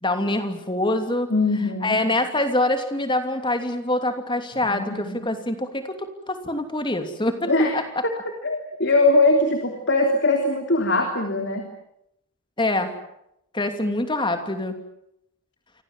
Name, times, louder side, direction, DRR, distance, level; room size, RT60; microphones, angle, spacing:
voice 1, 0.0-1.3 1.8-8.0 12.6-12.9 13.5-14.8, left 1 dB, 20° left, 7 dB, 2.9 m, -25 dB
voice 2, 1.3-2.0 4.7-5.2 7.4-7.7 8.0-8.1 8.4-11.7, left 2 dB, 50° left, 4 dB, 3.5 m, -21 dB
29.0 x 25.0 x 7.4 m, 0.79 s
head